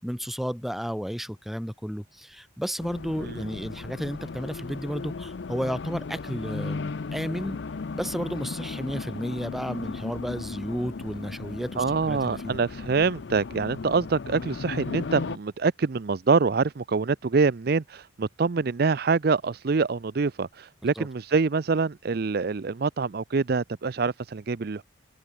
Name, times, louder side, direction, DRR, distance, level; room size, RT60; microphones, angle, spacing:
voice 1, 0.0-7.6 7.9-12.6 20.9-21.1, equal, ahead, 1.3 m, -32 dB
Race car auto racing, 2.8-15.4, left 4 dB, 60° left, 0.5 m, -36 dB
voice 2, 11.8-24.8, right 4 dB, 50° right, 0.5 m, -25 dB
open air
head